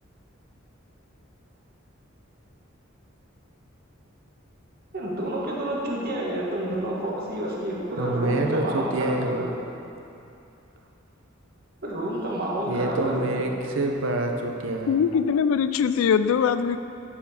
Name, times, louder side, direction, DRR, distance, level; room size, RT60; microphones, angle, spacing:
voice 1, 4.9-9.5 11.8-13.4, right 1 dB, 50° right, -4 dB, 1.3 m, -29 dB
voice 2, 8.0-9.5 12.7-15.0, right 2 dB, 65° right, 2 dB, 0.7 m, -26 dB
voice 3, 14.9-16.8, left 7 dB, 85° left, 12 dB, 0.3 m, -22 dB
11.0 x 4.4 x 4.2 m, 2.7 s
head